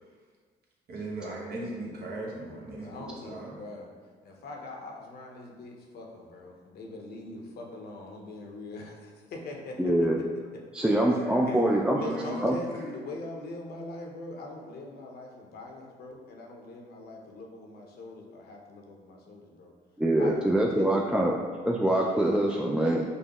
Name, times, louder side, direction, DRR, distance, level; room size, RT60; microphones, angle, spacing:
voice 1, 0.9-3.5 10.9-12.7, right 1 dB, 60° right, -3 dB, 1.0 m, -37 dB
voice 2, 2.7-3.9 4.2-11.1 11.5-11.6 12.0-19.7 20.2-21.3, left 2 dB, 60° left, 0 dB, 0.7 m, -42 dB
voice 3, 9.8-10.2 10.7-12.0 12.4-12.5 20.0-21.4 21.6-23.0, right 1 dB, 5° right, -1 dB, 0.3 m, -24 dB
5.3 x 2.0 x 2.9 m, 1.5 s
supercardioid pair, 65°, 18 cm